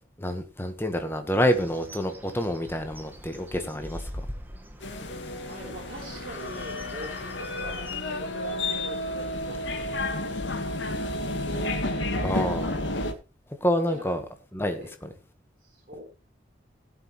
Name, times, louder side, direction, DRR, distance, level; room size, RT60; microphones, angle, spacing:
voice 1, 0.2-4.0 12.2-13.0 13.6-14.2 14.5-15.1, equal, 10° left, 1.5 m, -28 dB
Bird, 1.3-8.0, equal, 10° right, 1.6 m, -43 dB
sound 1, 4.8-13.1, left 1 dB, 80° left, 1.9 m, -31 dB
voice 2, 5.4-9.8 10.1-10.9 13.9-14.1 14.8-14.9 15.6-16.0, right 1 dB, 50° right, 4.3 m, -43 dB
17.5 x 8.0 x 3.3 m
head